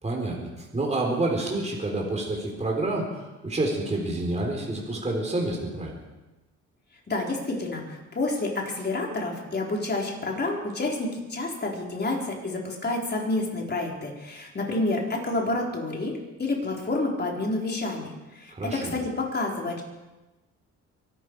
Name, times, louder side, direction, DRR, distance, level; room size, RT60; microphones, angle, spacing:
voice 1, 0.0-5.9 18.5-19.0, right 2 dB, 20° right, -1 dB, 4.1 m, -28 dB
voice 2, 7.1-19.8, left 2 dB, 35° left, -1 dB, 4.5 m, -29 dB
24.0 x 12.0 x 4.8 m, 1.1 s
cardioid pair, 90°, 30 cm